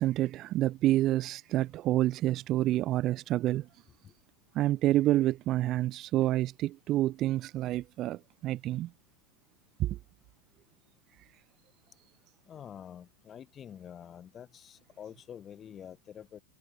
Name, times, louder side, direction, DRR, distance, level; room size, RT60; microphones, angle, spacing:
voice 1, 0.0-3.7 4.5-8.9 9.8-10.0, right 15 dB, 35° right, 0.8 m, -28 dB
voice 2, 12.5-16.4, left 9 dB, 25° left, 1.2 m, -47 dB
figure-of-eight pair, 90°, 0 cm